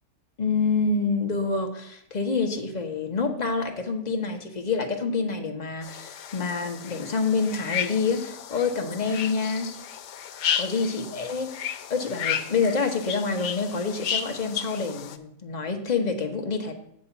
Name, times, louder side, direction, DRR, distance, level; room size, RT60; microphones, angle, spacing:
voice 1, 0.4-9.8 10.6-11.5 11.9-16.7, left 4 dB, 35° left, 3 dB, 0.8 m, -27 dB
sound 1, 5.8-15.2, left 9 dB, 85° left, 1.2 m, -33 dB
8.2 x 4.2 x 7.0 m, 0.73 s
omnidirectional pair, 1.6 m